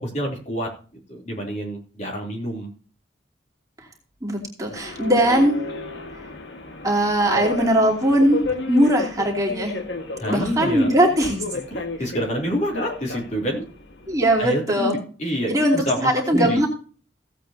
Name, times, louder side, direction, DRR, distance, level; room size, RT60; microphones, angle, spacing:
voice 1, 0.0-0.7 1.1-2.7 10.2-10.9 11.7-13.6 14.4-16.6, equal, 40° left, -1 dB, 3.3 m, -27 dB
voice 2, 4.2-5.6 6.8-8.4 8.7-9.8 10.3-11.4 14.1-15.0 15.5-16.7, equal, 20° right, -2 dB, 3.0 m, -20 dB
Subway metro underground, 4.8-14.5, left 3 dB, 75° left, 1.7 m, -33 dB
16.5 x 8.3 x 2.9 m, 0.39 s
head